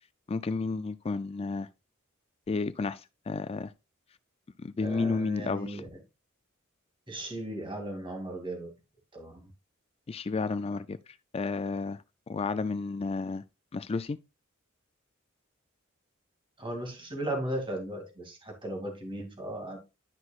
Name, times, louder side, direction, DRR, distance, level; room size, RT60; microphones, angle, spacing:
voice 1, 0.3-1.7 2.5-3.7 4.6-5.8 10.1-11.0 11.3-13.4 13.7-14.2, left 4 dB, 30° left, 0.3 m, -32 dB
voice 2, 4.8-5.9 7.1-8.7 9.1-9.4 16.6-19.8, right 1 dB, 25° right, 2.5 m, -36 dB
11.5 x 6.1 x 2.4 m
head